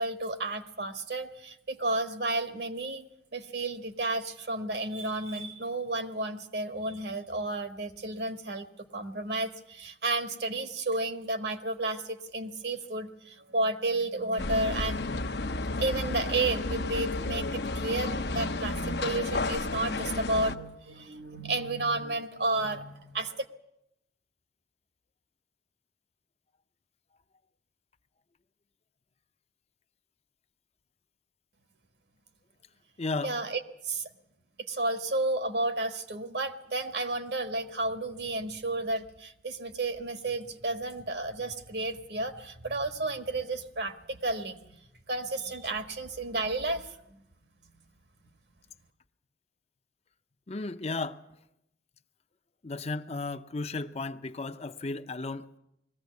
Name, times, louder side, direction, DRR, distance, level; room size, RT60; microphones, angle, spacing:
voice 1, 0.0-3.0 3.3-8.7 8.9-23.4 33.2-34.1 34.7-44.8 45.1-47.2, right 2 dB, 65° right, 1.4 m, -32 dB
sound 1, 14.4-20.6, left 2 dB, 65° left, 0.8 m, -32 dB
voice 2, 33.0-33.3 50.5-51.4 52.6-55.6, left 3 dB, 35° left, 0.7 m, -34 dB
20.5 x 15.0 x 9.4 m
head